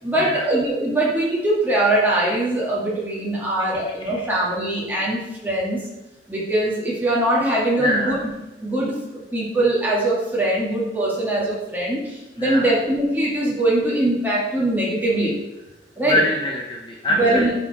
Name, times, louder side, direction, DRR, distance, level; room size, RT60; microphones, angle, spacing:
voice 1, 0.0-5.8 6.3-8.2 8.6-9.0 9.3-15.3 16.0-16.2 17.1-17.5, right 1 dB, 10° right, -6 dB, 2.0 m, -22 dB
voice 2, 7.8-8.2 12.4-12.7 16.0-17.6, left 1 dB, 25° left, -1 dB, 0.7 m, -24 dB
9.8 x 4.4 x 4.2 m, 1.0 s
head